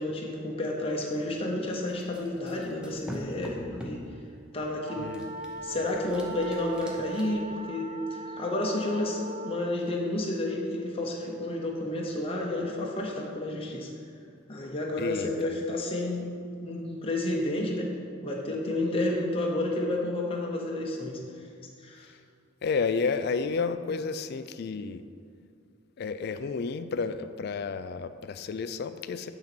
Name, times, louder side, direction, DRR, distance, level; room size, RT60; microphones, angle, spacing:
voice 1, 0.0-4.0 4.5-5.1 5.6-13.9 14.5-16.3 16.6-17.9 18.2-21.5 21.8-22.1, left 1 dB, 30° left, -1 dB, 0.8 m, -31 dB
sound 1, 1.9-4.1 5.1-7.2, left 1 dB, 5° right, 0.8 m, -43 dB
sound 2, 4.8-9.8, right 2 dB, 40° right, 0.5 m, -40 dB
voice 2, 15.0-15.5 22.6-25.0 26.0-29.3, left 5 dB, 55° left, 12 dB, 0.3 m, -31 dB
8.6 x 3.9 x 6.0 m, 2.4 s
head